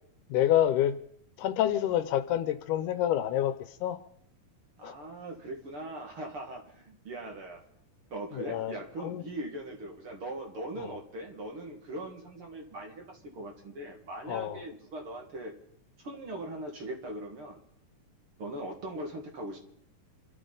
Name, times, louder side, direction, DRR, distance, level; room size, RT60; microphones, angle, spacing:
voice 1, 0.3-1.0 1.4-4.0 4.8-4.9 8.3-9.2 10.8-11.0 14.3-14.6, left 11 dB, 75° left, 11 dB, 2.3 m, -28 dB
voice 2, 4.8-7.6 8.1-15.5 16.0-17.6 18.4-19.6, right 1 dB, 45° right, 2 dB, 2.5 m, -40 dB
27.0 x 13.0 x 4.0 m, 0.67 s
omnidirectional pair, 3.7 m